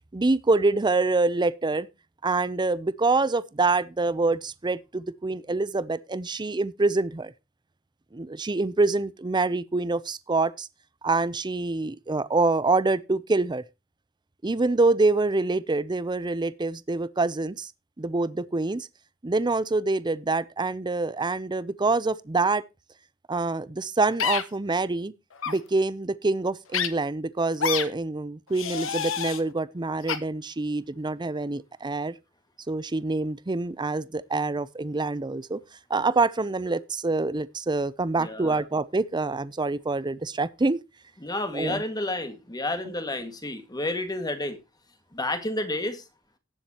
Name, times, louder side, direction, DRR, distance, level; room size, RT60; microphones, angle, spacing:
voice 1, 0.1-1.9 2.2-7.3 8.1-10.7 11.0-13.6 14.4-17.7 18.0-18.9 19.2-22.6 23.3-25.1 25.5-32.2 32.7-35.6 35.9-40.8 41.5-41.8, right 3 dB, 20° right, 0.6 m, -26 dB
sound 1, 24.2-24.4 25.4-25.6 26.7-26.9 27.6-27.8 28.5-29.4 30.1-30.2, left 7 dB, 70° left, 1.2 m, -27 dB
voice 2, 38.2-38.6 41.2-44.6 45.1-46.0, left 2 dB, 20° left, 1.8 m, -30 dB
18.5 x 7.5 x 2.9 m
head